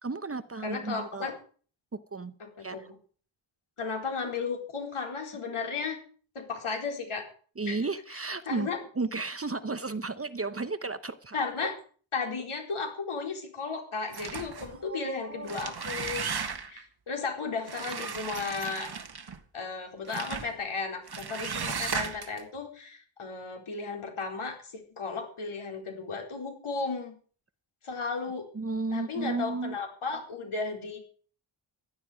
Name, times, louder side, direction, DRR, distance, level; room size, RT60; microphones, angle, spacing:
voice 1, 0.0-1.3 2.1-2.3 2.6-2.9 7.6-11.4 14.7-15.7 28.5-29.8, right 3 dB, 30° right, 12 dB, 0.9 m, -34 dB
voice 2, 0.6-1.4 2.4-2.9 3.8-6.0 6.3-7.3 7.7-7.8 8.5-8.8 11.3-11.7 12.1-16.3 16.7-18.9 19.5-27.2 27.8-28.5 28.9-31.0, left 4 dB, 80° left, 2 dB, 4.4 m, -34 dB
sound 1, 14.1-14.8 15.3-16.8 17.7-19.4 20.1-20.5 21.1-22.4, right 6 dB, 50° right, 1.6 m, -35 dB
15.5 x 11.5 x 5.1 m, 0.42 s
wide cardioid pair, 130°, 49 cm